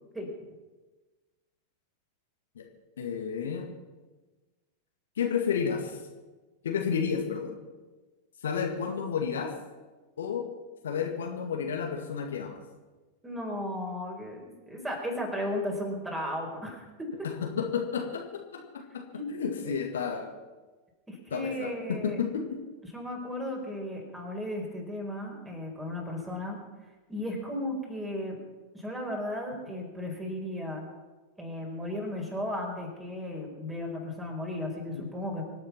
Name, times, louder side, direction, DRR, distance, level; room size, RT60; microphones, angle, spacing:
voice 1, 3.0-3.7 5.2-6.0 6.6-7.6 8.4-9.5 10.2-10.5 10.8-12.6 17.2-20.3 21.3-22.6, left 6 dB, 65° left, 3 dB, 1.9 m, -31 dB
voice 2, 13.2-17.1 19.1-19.3 19.6-19.7 21.1-22.2 22.9-26.6 27.1-28.4 28.7-30.8 31.4-35.4, left 1 dB, 10° right, 0 dB, 5.1 m, -35 dB
25.5 x 8.6 x 6.0 m, 1.2 s
figure-of-eight pair, 90°, 0 cm